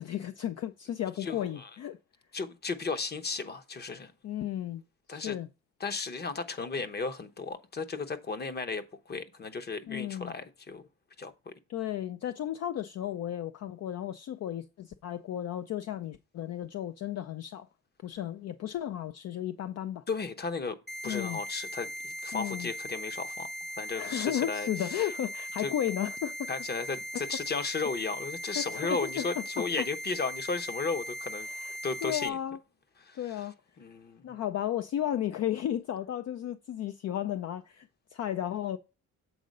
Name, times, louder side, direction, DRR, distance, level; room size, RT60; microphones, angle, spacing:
voice 1, 0.0-2.0 4.2-4.8 5.1-5.5 9.9-10.3 11.7-17.7 18.0-20.0 21.0-21.4 22.3-22.7 23.9-26.5 28.6-29.9 31.5-31.8 32.0-32.6 33.1-33.6 34.2-38.8, left 11 dB, 55° left, 0.5 m, -34 dB
voice 2, 1.2-1.7 2.3-4.1 5.1-5.4 5.8-10.8 11.2-11.5 20.1-20.8 21.0-23.5 23.8-25.1 25.6-25.7 26.5-31.5 31.8-32.4 33.1-33.2 33.8-34.3, left 4 dB, 35° left, 0.9 m, -35 dB
sound 1, 20.9-32.3, equal, ahead, 0.3 m, -39 dB
7.9 x 3.8 x 5.2 m
cardioid pair, 90°, 30 cm